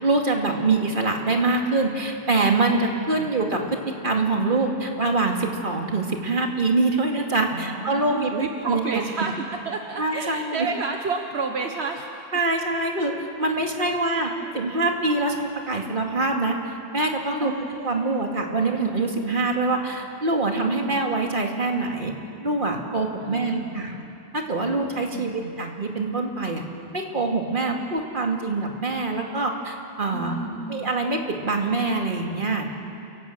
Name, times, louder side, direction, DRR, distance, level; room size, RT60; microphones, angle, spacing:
voice 1, 0.0-8.3 8.6-8.8 9.2-9.3 10.0-10.7 12.3-17.5 17.8-22.1 22.4-23.9 24.3-26.6 26.9-30.3 30.7-32.7, right 3 dB, 50° right, 1 dB, 2.5 m, -24 dB
voice 2, 7.5-12.1 13.9-14.6 17.4-18.3 20.8-21.0 23.2-24.1 25.1-25.8 30.1-30.9, right 4 dB, 80° right, 3 dB, 1.5 m, -32 dB
28.5 x 18.0 x 8.0 m, 2.6 s
omnidirectional pair, 1.1 m